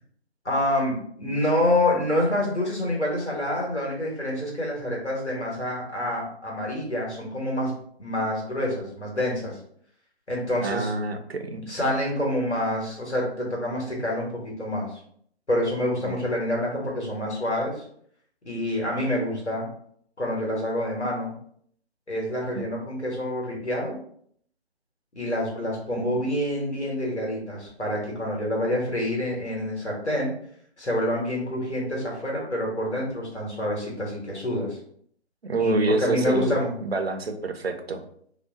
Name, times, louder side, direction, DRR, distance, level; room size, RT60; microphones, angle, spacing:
voice 1, 0.4-7.7 8.0-9.6 10.3-10.9 11.7-15.0 15.5-17.7 18.4-19.7 20.2-21.3 22.1-23.9 25.1-30.3 30.8-34.8 35.6-36.7, left 1 dB, 85° left, -2 dB, 1.4 m, -27 dB
voice 2, 10.6-11.6 16.0-16.2 22.5-22.7 25.9-26.2 35.4-36.5 36.8-38.0, right 3 dB, 65° right, 7 dB, 0.5 m, -27 dB
2.7 x 2.1 x 3.4 m, 0.64 s
figure-of-eight pair, 145°, 33 cm